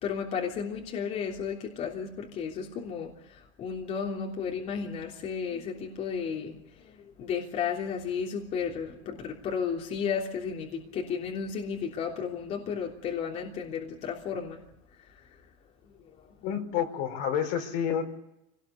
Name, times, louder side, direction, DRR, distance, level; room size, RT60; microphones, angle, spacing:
voice 1, 0.0-14.6 15.2-15.3, left 6 dB, 45° left, 0 dB, 3.3 m, -33 dB
voice 2, 16.4-18.0, left 8 dB, 65° left, 4 dB, 4.6 m, -29 dB
24.5 x 19.0 x 8.3 m, 0.85 s
supercardioid pair, 120°, 16 cm